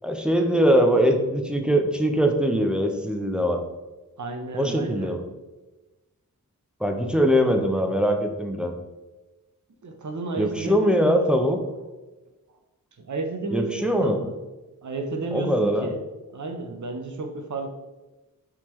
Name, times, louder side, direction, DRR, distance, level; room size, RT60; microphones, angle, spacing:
voice 1, 0.0-3.6 4.5-5.2 6.8-8.7 10.4-11.6 13.5-14.2 15.3-15.9, equal, 5° right, 4 dB, 0.5 m, -22 dB
voice 2, 4.2-5.2 9.8-11.5 13.0-14.4 14.8-16.0 16.3-17.7, right 3 dB, 55° right, 5 dB, 0.6 m, -32 dB
4.5 x 3.6 x 3.1 m, 1.1 s
wide cardioid pair, 70°, 35 cm